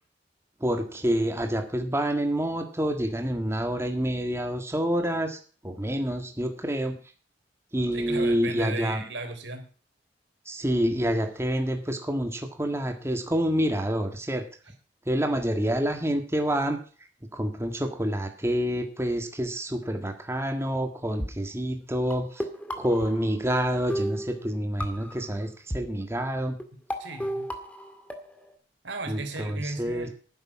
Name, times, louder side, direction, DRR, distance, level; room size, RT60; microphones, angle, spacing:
voice 1, 0.6-7.0 7.7-9.1 10.5-14.5 15.1-16.8 17.3-22.5 22.8-26.6 29.1-30.1, equal, 15° right, 5 dB, 1.7 m, -28 dB
voice 2, 7.9-9.7 26.7-27.5 28.8-30.1, right 2 dB, 85° right, 6 dB, 3.4 m, -36 dB
sound 1, 21.2-21.3 22.1-23.6 23.9-25.3 25.7-25.8 26.6-26.7 26.9-28.5, equal, 10° left, 2.0 m, -33 dB
12.0 x 10.5 x 4.8 m, 0.40 s
head